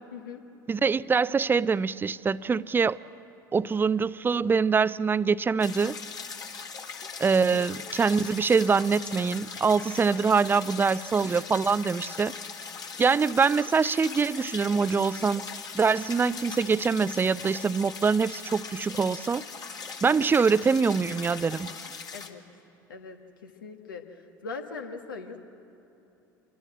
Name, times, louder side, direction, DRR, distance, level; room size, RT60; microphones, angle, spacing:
voice 1, 0.1-0.4 7.5-7.7 22.1-22.4 22.9-24.0 24.4-25.4, left 4 dB, 75° left, 5 dB, 1.7 m, -40 dB
voice 2, 0.7-3.0 3.5-6.0 7.2-12.3 13.0-15.4 15.7-19.4 20.0-21.7, right 5 dB, 20° right, 17 dB, 0.5 m, -24 dB
sound 1, 5.6-22.3, left 5 dB, 35° left, 2.1 m, -40 dB
26.5 x 22.5 x 7.6 m, 3.0 s
figure-of-eight pair, 65°, 11 cm